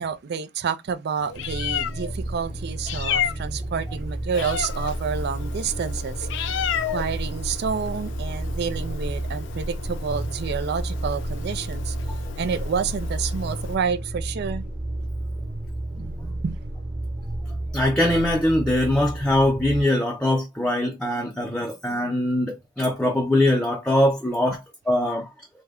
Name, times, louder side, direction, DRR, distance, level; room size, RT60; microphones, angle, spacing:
voice 1, 0.0-6.5 6.9-12.0 12.4-14.6 15.9-16.6, right 6 dB, 60° right, 0.4 m, -29 dB
Meow, 1.2-13.8, left 6 dB, 65° left, 0.4 m, -32 dB
sound 1, 1.3-19.8, right 1 dB, 30° right, 1.0 m, -32 dB
voice 2, 17.7-25.3, left 1 dB, 5° left, 0.5 m, -22 dB
3.5 x 2.2 x 3.4 m
head